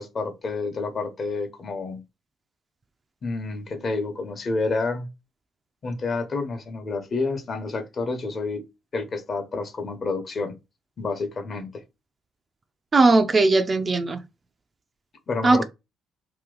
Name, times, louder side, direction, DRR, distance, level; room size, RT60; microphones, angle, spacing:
voice 1, 0.0-2.0 3.2-5.1 5.8-8.6 8.9-10.6 11.0-11.8 15.3-15.6, left 3 dB, 45° left, 1.0 m, -29 dB
voice 2, 12.9-14.2 15.4-15.6, right 3 dB, 35° right, 0.5 m, -18 dB
3.0 x 2.8 x 3.8 m
supercardioid pair, 70°, 0 cm